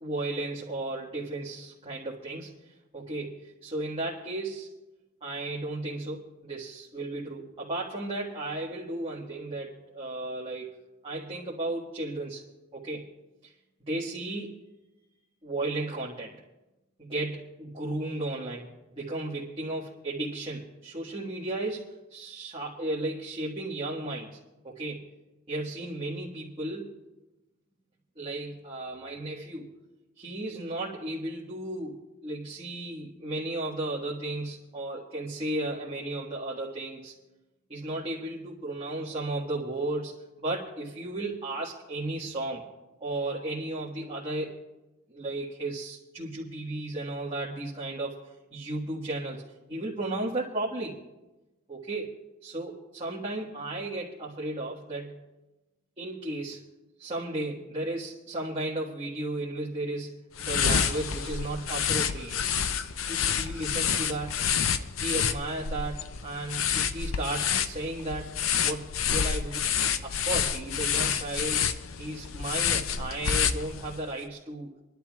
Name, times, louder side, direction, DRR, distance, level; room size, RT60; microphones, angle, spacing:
voice 1, 0.0-4.7 5.2-10.8 11.0-12.4 12.7-13.1 13.4-13.5 13.9-14.5 15.4-16.3 17.0-24.4 24.6-25.1 25.5-26.9 28.1-29.7 30.2-37.1 37.7-42.6 43.0-44.6 45.1-48.2 48.5-49.4 49.7-50.9 51.7-52.1 52.4-55.2 56.0-56.6 57.0-62.4 63.1-64.3 65.0-68.3 68.6-69.7 70.0-71.6 72.0-74.7, right 2 dB, 30° right, -6 dB, 1.6 m, -34 dB
sound 1, 60.4-74.1, left 7 dB, 80° left, 0.6 m, -28 dB
27.5 x 11.5 x 2.4 m, 1.0 s
head